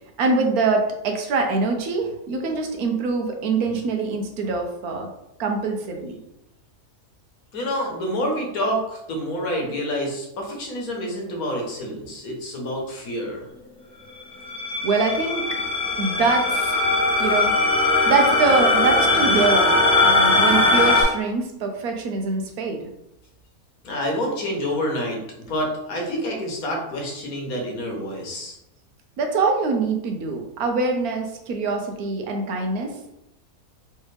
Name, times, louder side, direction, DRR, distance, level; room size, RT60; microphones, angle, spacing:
voice 1, 0.2-5.1 5.4-6.2 14.8-15.5 16.0-16.9 17.2-17.5 17.8-22.9 29.2-33.1, right 4 dB, 85° right, 3 dB, 1.2 m, -24 dB
voice 2, 7.5-13.4 23.8-28.6, equal, 75° left, 0 dB, 1.4 m, -28 dB
sound 1, 14.4-21.0, left 2 dB, 5° left, 0.7 m, -20 dB
3.3 x 3.2 x 3.2 m, 0.84 s
omnidirectional pair, 1.5 m